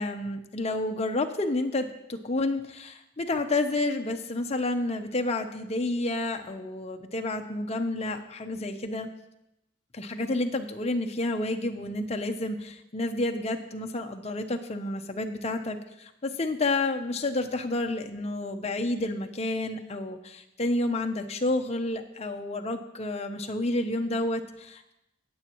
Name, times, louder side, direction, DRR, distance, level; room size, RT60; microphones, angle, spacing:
voice 1, 0.0-9.1 9.9-24.9, left 2 dB, 30° left, 5 dB, 0.7 m, -30 dB
19.0 x 7.1 x 3.0 m, 0.86 s
head